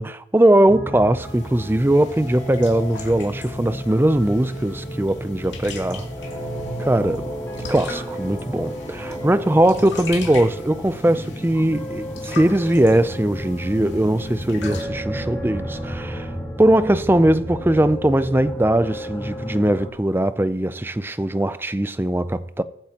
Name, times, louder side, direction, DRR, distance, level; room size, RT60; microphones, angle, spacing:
voice 1, 0.0-6.1 6.8-7.3 7.7-16.3 16.6-22.6, right 1 dB, 10° right, 0.4 m, -20 dB
sound 1, 0.7-19.9, equal, 10° left, 1.8 m, -32 dB
sound 2, 1.2-14.8, left 4 dB, 70° left, 2.8 m, -40 dB
22.5 x 9.1 x 2.9 m
head